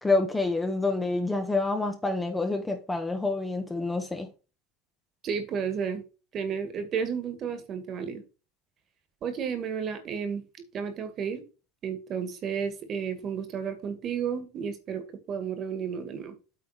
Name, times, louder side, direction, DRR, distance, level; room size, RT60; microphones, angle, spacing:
voice 1, 0.0-4.3, left 3 dB, 10° left, 1.2 m, -27 dB
voice 2, 5.2-6.0 6.3-8.2 9.2-10.4 10.7-11.4 11.8-16.3, right 7 dB, 40° right, 1.9 m, -32 dB
8.6 x 4.0 x 4.8 m
supercardioid pair, 120°, 0 cm